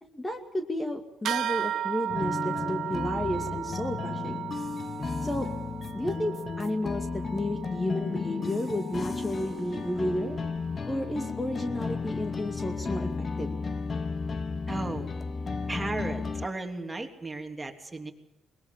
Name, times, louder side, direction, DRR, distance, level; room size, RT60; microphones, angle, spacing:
voice 1, 0.0-4.4 5.2-5.5 5.9-7.1 7.3-10.4 10.9-13.1 13.4-13.5, left 1 dB, 15° left, 6 dB, 2.4 m, -32 dB
sound 1, 1.2-11.1, right 10 dB, 70° right, 0.8 m, -36 dB
sound 2, 2.1-16.5, left 4 dB, 40° left, 1.1 m, -34 dB
voice 2, 14.7-15.1 15.7-18.1, right 2 dB, 15° right, 4 dB, 3.4 m, -35 dB
22.0 x 21.0 x 7.4 m, 0.91 s
cardioid pair, 90°, 0 cm